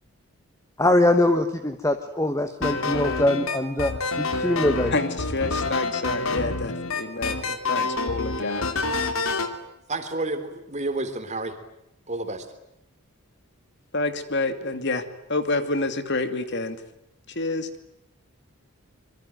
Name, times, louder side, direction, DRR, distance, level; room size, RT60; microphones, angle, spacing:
voice 1, 0.8-3.9 4.2-4.9, left 1 dB, 15° left, 8 dB, 1.3 m, -22 dB
sound 1, 2.6-9.5, left 3 dB, 70° left, 2.9 m, -27 dB
voice 2, 4.9-8.8 13.9-15.0 15.3-16.8 17.3-17.7, left 2 dB, 50° left, 10 dB, 2.5 m, -28 dB
voice 3, 9.9-11.6 12.1-12.5, right 2 dB, 30° right, 8 dB, 3.5 m, -30 dB
26.5 x 23.0 x 9.4 m, 0.82 s
head